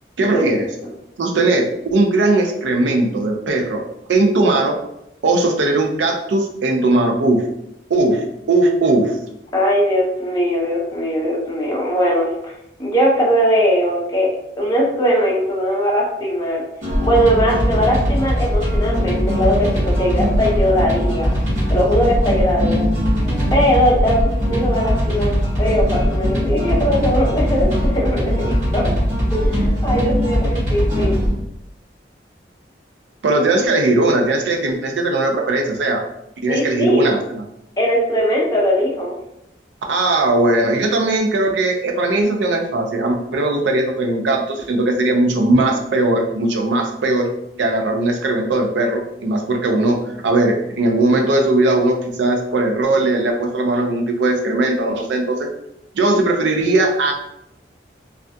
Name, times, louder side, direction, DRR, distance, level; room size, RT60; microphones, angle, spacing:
voice 1, 0.2-0.7 1.2-3.8 4.1-4.8 5.2-7.4 7.9-9.2 33.2-36.0 36.4-37.4 39.9-47.3 47.6-55.5 55.9-57.1, right 2 dB, 75° right, 2 dB, 0.4 m, -18 dB
voice 2, 9.5-12.5 12.8-14.3 14.6-16.6 17.0-21.3 21.7-22.9 23.5-28.9 29.3-31.2 36.5-37.2 37.8-39.2, equal, 20° left, -4 dB, 0.6 m, -20 dB
sound 1, 16.8-31.4, equal, 40° right, 1.1 m, -20 dB
2.4 x 2.2 x 2.5 m, 0.80 s
head